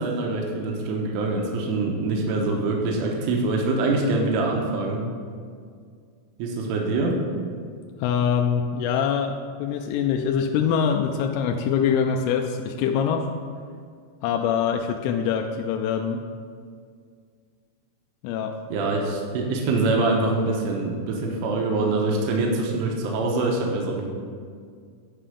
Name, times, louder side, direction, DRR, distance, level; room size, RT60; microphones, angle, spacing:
voice 1, 0.0-5.0 6.4-7.2 18.7-24.1, right 2 dB, 80° right, 0 dB, 3.5 m, -24 dB
voice 2, 8.0-13.3 14.2-16.2 18.2-18.5, left 7 dB, 85° left, 3 dB, 3.2 m, -24 dB
10.0 x 5.6 x 6.7 m, 2.1 s
omnidirectional pair, 5.8 m